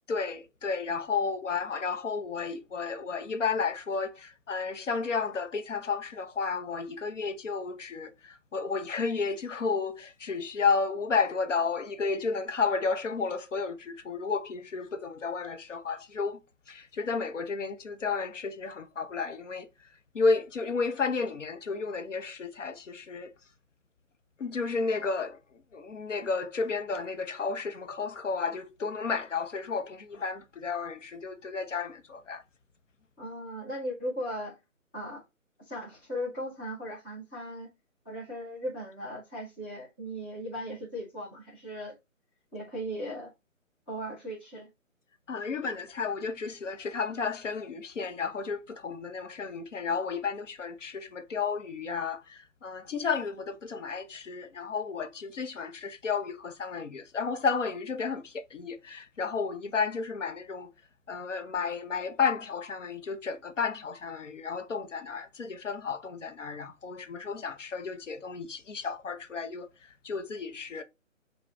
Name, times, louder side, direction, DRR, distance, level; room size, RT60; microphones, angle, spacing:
voice 1, 0.1-16.4 16.7-19.7 20.1-23.3 24.4-25.4 25.7-32.4 45.3-60.7 61.1-69.7 70.0-70.8, left 5 dB, 60° left, 0.9 m, -32 dB
voice 2, 33.2-34.6 34.9-35.2 35.7-37.7 38.0-41.9 42.5-43.3 43.9-44.7, equal, 10° left, 0.6 m, -37 dB
5.2 x 2.4 x 3.6 m
figure-of-eight pair, 150°, 41 cm